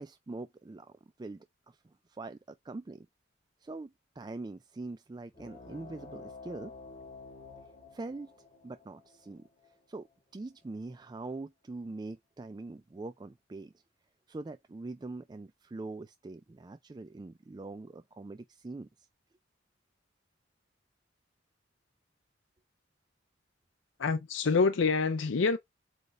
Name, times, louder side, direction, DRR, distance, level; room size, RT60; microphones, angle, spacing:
voice 1, 0.0-3.1 3.6-6.7 7.9-8.3 8.6-10.1 10.3-13.7 14.3-19.1, right 2 dB, 20° right, 0.3 m, -43 dB
sound 1, 5.3-10.4, left 3 dB, 30° left, 2.7 m, -50 dB
voice 2, 24.0-25.6, left 4 dB, 80° left, 0.6 m, -26 dB
8.0 x 3.3 x 3.7 m
head